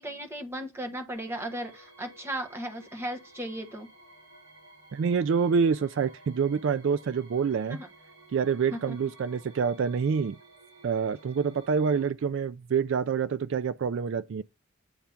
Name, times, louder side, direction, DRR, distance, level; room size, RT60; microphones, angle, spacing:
voice 1, 0.0-3.9 7.7-7.9 8.7-8.9, right 1 dB, 10° right, 1.1 m, -36 dB
sound 1, 1.1-12.1, right 2 dB, 80° right, 4.5 m, -54 dB
voice 2, 4.9-7.8 8.3-10.4 10.8-14.4, right 6 dB, 60° right, 0.3 m, -27 dB
8.7 x 3.5 x 5.6 m
head